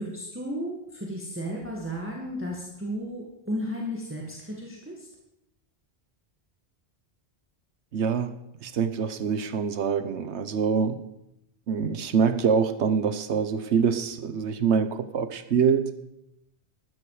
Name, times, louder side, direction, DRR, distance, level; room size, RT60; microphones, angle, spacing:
voice 1, 0.0-5.1, equal, 10° right, -2 dB, 1.9 m, -34 dB
voice 2, 7.9-11.0 11.7-15.9, right 6 dB, 85° right, 12 dB, 1.2 m, -25 dB
13.5 x 12.5 x 4.9 m, 0.84 s
omnidirectional pair, 1.1 m